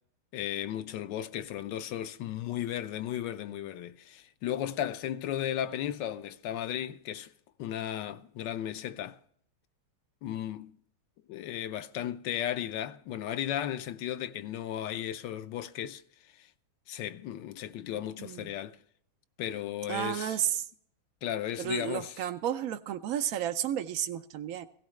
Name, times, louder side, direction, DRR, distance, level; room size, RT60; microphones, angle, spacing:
voice 1, 0.3-7.3 7.6-9.2 10.2-10.7 11.3-16.5 16.9-18.8 19.4-20.4 21.2-22.2, left 11 dB, 70° left, 1.3 m, -35 dB
voice 2, 19.9-20.7 21.6-24.7, right 10 dB, 70° right, 0.8 m, -32 dB
16.5 x 15.5 x 3.2 m
omnidirectional pair, 2.2 m